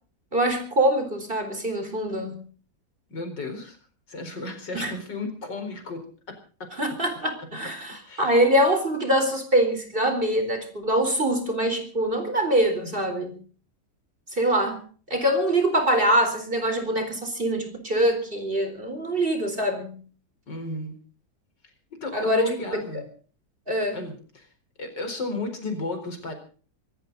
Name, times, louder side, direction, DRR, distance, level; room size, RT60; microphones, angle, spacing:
voice 1, 0.3-2.4 4.7-4.9 6.8-13.4 14.3-14.8 15.1-20.0 22.1-22.8 23.7-24.0, right 1 dB, 30° right, 6 dB, 4.3 m, -24 dB
voice 2, 3.1-3.8 4.1-6.0 6.3-6.7 8.0-8.3 20.5-20.9 21.9-23.0 23.9-24.5 24.8-26.3, left 2 dB, 80° left, 6 dB, 5.0 m, -33 dB
25.5 x 14.0 x 4.0 m, 0.41 s
omnidirectional pair, 1.9 m